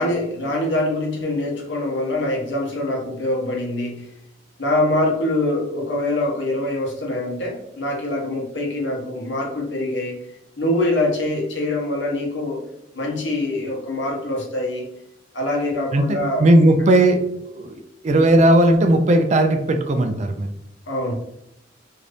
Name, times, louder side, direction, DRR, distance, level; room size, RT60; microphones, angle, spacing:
voice 1, 0.0-4.1 4.6-10.2 10.6-12.6 12.9-14.9 15.3-16.5 20.9-21.1, left 1 dB, 75° left, -1 dB, 0.9 m, -24 dB
voice 2, 15.9-20.5, right 1 dB, 40° right, 6 dB, 0.3 m, -17 dB
2.7 x 2.5 x 3.3 m, 0.79 s
head